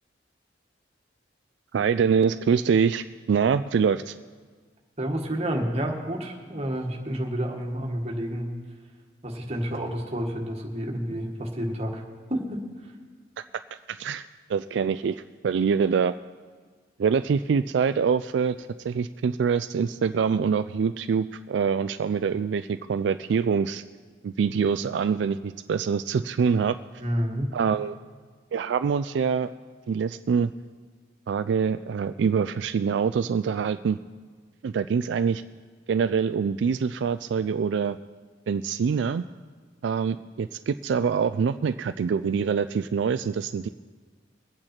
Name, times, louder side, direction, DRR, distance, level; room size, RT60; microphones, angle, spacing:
voice 1, 1.7-4.1 13.9-15.2 15.4-16.2 17.0-23.8 24.2-26.8 27.5-27.9 28.5-29.5 29.9-30.5 31.3-34.0 34.6-35.4 35.9-38.0 38.5-39.2 39.8-43.7, right 6 dB, 75° right, 11 dB, 0.3 m, -25 dB
voice 2, 5.0-8.5 9.2-12.0 12.3-12.9 27.0-27.5, equal, 35° right, 1 dB, 1.7 m, -30 dB
23.0 x 8.8 x 4.4 m, 1.5 s
head